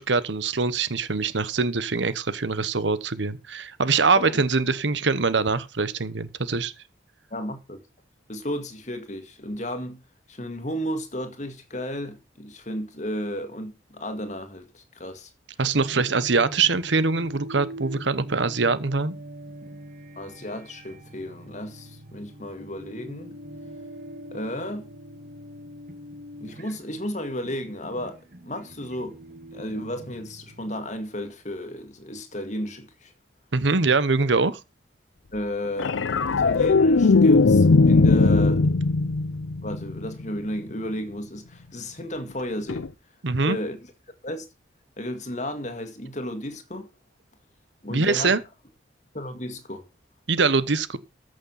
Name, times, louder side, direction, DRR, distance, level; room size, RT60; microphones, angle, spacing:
voice 1, 0.0-6.7 15.6-19.1 33.5-34.6 43.2-43.6 47.9-48.4 50.3-51.0, right 4 dB, 65° right, 1.0 m, -23 dB
voice 2, 7.3-7.8 8.3-10.0 10.3-15.3 20.2-23.4 24.3-24.9 26.4-29.2 29.5-33.1 35.3-38.7 39.6-42.9 43.4-43.8 44.2-44.5 45.0-46.9 47.8-48.4 49.1-49.9, equal, 40° left, 2.0 m, -33 dB
sound 1, 15.8-30.9, right 1 dB, 45° right, 1.4 m, -43 dB
sound 2, 35.8-40.3 42.7-42.9, left 3 dB, 80° left, 0.6 m, -19 dB
14.5 x 6.5 x 5.6 m
head